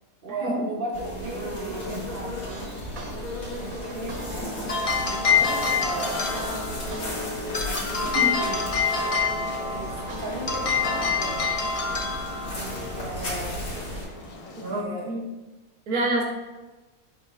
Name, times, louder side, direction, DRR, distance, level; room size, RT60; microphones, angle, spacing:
voice 1, 0.2-2.7 3.5-4.5 5.1-6.3 7.9-8.6 9.5-11.4 12.5-13.6 14.5-15.1, right 2 dB, 40° right, -3 dB, 1.0 m, -36 dB
sound 1, 0.9-14.0, left 1 dB, 85° left, 2.3 m, -34 dB
sound 2, 2.5-3.1 3.5-9.1 9.5-11.3, right 1 dB, 70° right, 1.4 m, -39 dB
sound 3, 4.4-14.8, left 5 dB, 55° left, 0.4 m, -27 dB
voice 2, 14.6-15.2 15.9-16.2, right 1 dB, 85° right, -1 dB, 1.7 m, -27 dB
11.0 x 3.9 x 2.4 m, 1.2 s
omnidirectional pair, 1.6 m